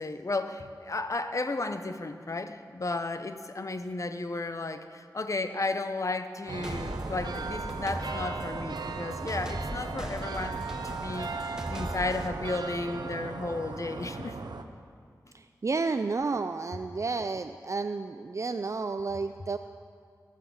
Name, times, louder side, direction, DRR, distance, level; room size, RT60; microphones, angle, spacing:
voice 1, 0.0-11.4 11.7-14.4, left 2 dB, 45° left, 9 dB, 0.8 m, -33 dB
sound 1, 6.5-14.6, right 4 dB, 80° right, 0.7 m, -37 dB
sound 2, 6.6-12.3, equal, 10° right, 1.1 m, -39 dB
voice 2, 15.3-19.6, right 4 dB, 45° right, 9 dB, 0.4 m, -31 dB
16.5 x 6.6 x 7.1 m, 2.1 s
wide cardioid pair, 65°, 7 cm